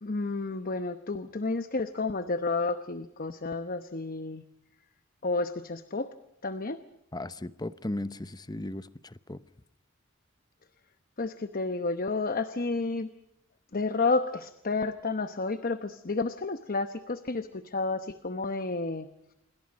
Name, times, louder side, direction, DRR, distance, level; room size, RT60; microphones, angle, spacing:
voice 1, 0.0-4.4 5.2-6.1 6.4-6.8 11.2-13.1 13.7-19.1, left 3 dB, 45° left, 1.0 m, -31 dB
voice 2, 7.1-9.4, left 1 dB, 20° left, 0.8 m, -36 dB
27.5 x 23.5 x 5.2 m
head